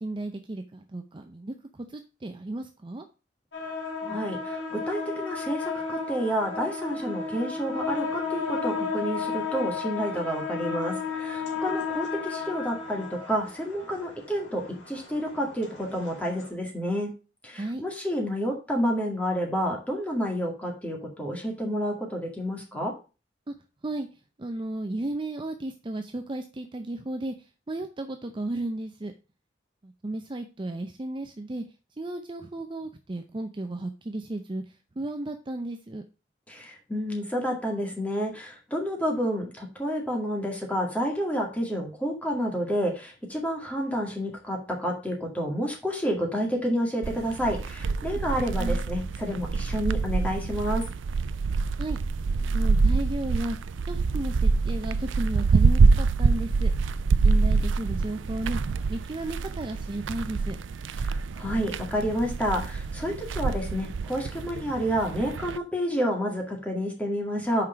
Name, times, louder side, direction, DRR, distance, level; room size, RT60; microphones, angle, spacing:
voice 1, 0.0-3.0 17.6-17.8 23.5-23.6 23.8-24.1 24.4-27.3 27.7-29.1 29.8-31.6 32.0-34.6 35.0-36.0 48.6-48.8 51.8-52.0 52.3-53.6 53.9-56.7 57.2-58.6 58.9-60.6, right 2 dB, 25° right, 6 dB, 0.5 m, -34 dB
sound 1, 3.5-16.5, left 4 dB, 75° left, 2.5 m, -33 dB
voice 2, 4.0-17.1 17.4-22.9 36.5-50.8 61.0-67.6, equal, 10° left, 0 dB, 2.0 m, -29 dB
sound 2, 47.0-65.6, right 4 dB, 90° right, 0.4 m, -26 dB
5.8 x 4.9 x 5.7 m, 0.32 s
head